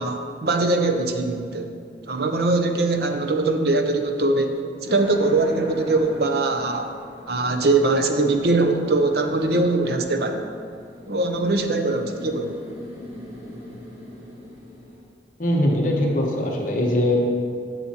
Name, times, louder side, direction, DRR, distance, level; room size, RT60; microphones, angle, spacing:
voice 1, 0.0-1.7 2.1-6.9 7.3-10.4 11.1-12.6, right 2 dB, 60° right, 5 dB, 0.6 m, -22 dB
sound 1, 4.9-15.0, left 1 dB, 30° right, 1.8 m, -41 dB
voice 2, 15.4-17.2, left 1 dB, 45° left, -1 dB, 1.0 m, -21 dB
10.5 x 7.3 x 2.9 m, 2.2 s
head